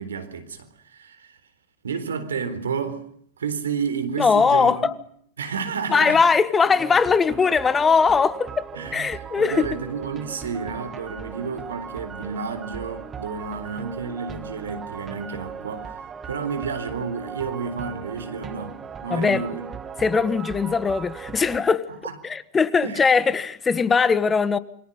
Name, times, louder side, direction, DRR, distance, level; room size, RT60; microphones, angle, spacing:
voice 1, 0.0-1.4 1.8-3.1 3.4-4.9 5.4-6.2 8.7-15.9 16.2-19.6 22.0-22.2 22.8-23.1, right 5 dB, 85° right, 3.8 m, -31 dB
voice 2, 4.2-4.9 5.9-9.7 19.1-19.4 20.0-21.9 22.2-24.6, left 5 dB, 20° left, 1.6 m, -20 dB
sound 1, 6.6-21.6, right 7 dB, 25° right, 1.9 m, -38 dB
28.0 x 24.0 x 5.5 m
hypercardioid pair, 95°, 0 cm